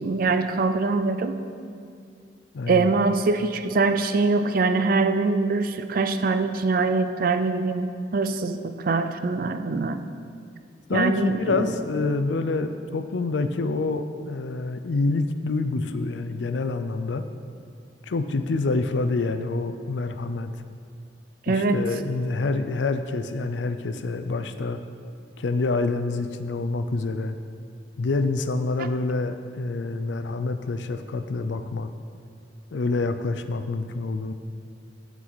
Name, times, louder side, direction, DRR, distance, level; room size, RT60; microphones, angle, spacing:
voice 1, 0.0-1.4 2.7-10.0 10.9-11.7 21.5-21.8 28.8-28.9, right 3 dB, 55° right, 9 dB, 0.5 m, -23 dB
voice 2, 2.5-2.9 10.9-17.2 18.0-20.5 21.5-24.8 25.4-27.4 28.0-31.9 32.7-34.3, left 3 dB, 90° left, 9 dB, 0.5 m, -27 dB
14.0 x 4.7 x 4.0 m, 2.3 s
head